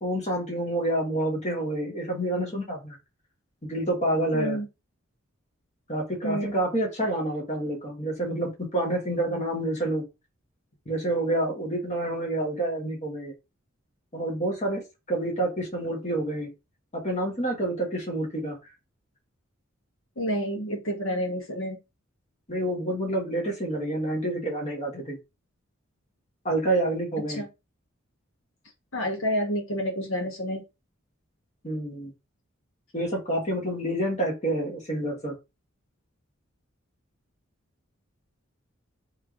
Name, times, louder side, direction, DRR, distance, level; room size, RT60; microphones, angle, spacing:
voice 1, 0.0-3.0 3.6-4.6 5.9-10.0 10.9-13.3 14.1-14.8 15.1-16.5 16.9-18.6 22.5-25.2 26.4-27.4 31.6-32.1 32.9-35.3, right 1 dB, 35° left, 0 dB, 1.3 m, -28 dB
voice 2, 4.3-4.6 6.2-6.6 20.2-21.8 27.3-27.5 28.9-30.6, equal, 75° left, 0 dB, 1.5 m, -29 dB
3.3 x 3.1 x 3.7 m, 0.25 s
head